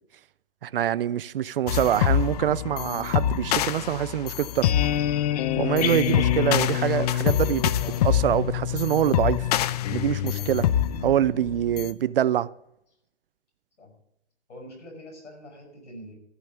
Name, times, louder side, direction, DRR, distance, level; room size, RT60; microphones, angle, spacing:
voice 1, 0.6-4.7 5.6-7.7 8.0-9.5 9.9-10.7 11.0-12.5, right 10 dB, 55° right, 0.5 m, -25 dB
sound 1, 1.7-11.9, left 11 dB, 35° left, 0.6 m, -25 dB
voice 2, 14.5-16.2, equal, 80° left, 6.7 m, -44 dB
14.0 x 5.5 x 8.8 m
hypercardioid pair, 135°, 35 cm